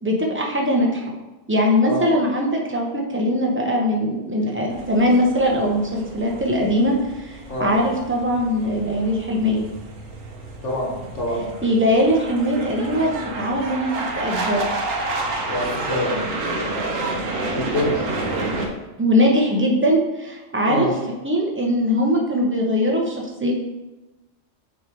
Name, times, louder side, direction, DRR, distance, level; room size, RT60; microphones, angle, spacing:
voice 1, 0.0-1.0 1.5-9.6 11.6-13.9 14.2-14.6 19.0-20.9 21.2-23.5, equal, 10° right, -1 dB, 0.7 m, -21 dB
sound 1, 4.7-18.7, right 2 dB, 85° right, 1.2 m, -30 dB
voice 2, 10.6-11.5 15.4-17.2 17.5-18.1 20.7-20.9, left 1 dB, 75° left, -3 dB, 1.8 m, -26 dB
6.8 x 3.2 x 4.6 m, 1.1 s
omnidirectional pair, 1.3 m